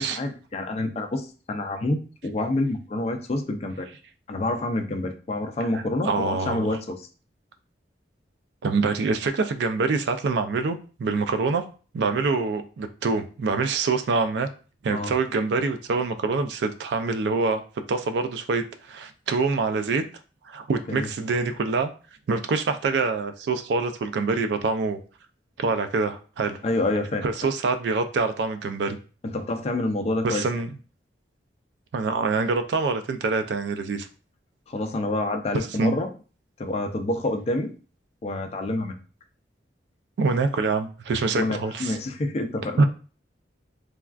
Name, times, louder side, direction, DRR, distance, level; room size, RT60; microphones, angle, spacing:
voice 1, 0.0-3.9 4.3-7.1 14.9-15.1 20.9-21.1 26.6-27.2 29.2-30.6 34.7-36.1 36.6-37.7 38.2-39.0 41.3-42.8, left 2 dB, 35° left, 6 dB, 0.3 m, -28 dB
voice 2, 5.7-6.8 8.6-11.7 11.9-14.5 14.8-17.6 17.9-20.0 20.5-21.9 22.3-25.0 25.6-26.6 27.2-29.0 30.2-30.7 31.9-34.1 35.5-36.0 40.2-42.0 42.8-42.9, right 4 dB, 65° right, 8 dB, 0.3 m, -25 dB
3.2 x 2.3 x 2.4 m, 0.37 s
head